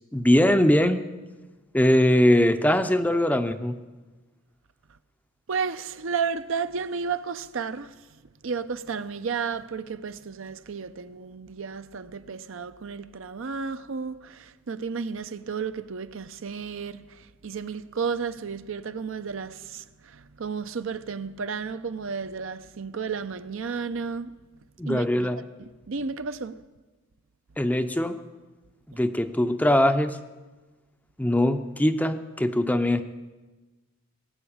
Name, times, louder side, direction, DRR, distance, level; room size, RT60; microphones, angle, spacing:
voice 1, 0.1-1.0 1.7-3.7 24.8-25.4 27.6-28.2 29.0-30.2 31.2-33.0, left 1 dB, 5° left, 0.5 m, -21 dB
voice 2, 5.5-7.9 8.4-17.0 17.4-24.3 24.9-25.3 25.9-26.6 28.9-29.0, right 5 dB, 60° right, 0.6 m, -32 dB
19.5 x 7.9 x 8.7 m
head